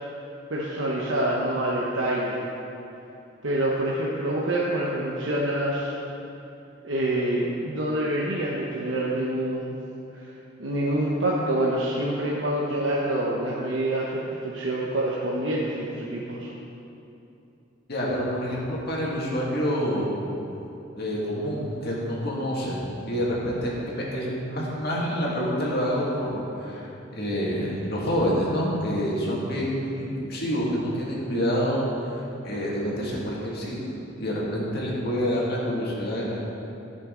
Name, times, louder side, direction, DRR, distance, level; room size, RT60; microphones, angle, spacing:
voice 1, 0.5-2.4 3.4-6.0 6.8-9.8 10.1-10.3 10.6-16.5, right 1 dB, 75° right, -5 dB, 1.1 m, -26 dB
voice 2, 17.9-20.2 20.9-31.8 32.0-36.4, equal, 55° left, -4 dB, 2.1 m, -27 dB
13.5 x 6.6 x 3.9 m, 2.8 s
head